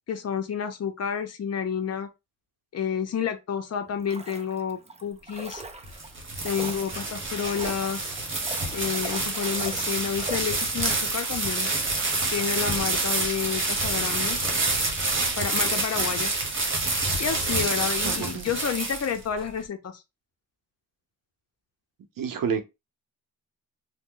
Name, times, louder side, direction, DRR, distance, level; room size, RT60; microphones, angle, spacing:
voice 1, 0.1-2.1 2.7-5.6 6.4-8.1 8.7-11.7 12.3-14.4 15.4-16.3 17.2-20.0, left 7 dB, 50° left, 0.6 m, -30 dB
sound 1, 3.9-11.0 11.3-11.4, right 3 dB, 20° right, 0.5 m, -40 dB
sound 2, 5.6-19.4, right 2 dB, 35° right, 1.2 m, -27 dB
voice 2, 18.0-18.6 22.2-22.6, right 6 dB, 80° right, 0.8 m, -29 dB
3.0 x 2.2 x 3.7 m
wide cardioid pair, 105°, 33 cm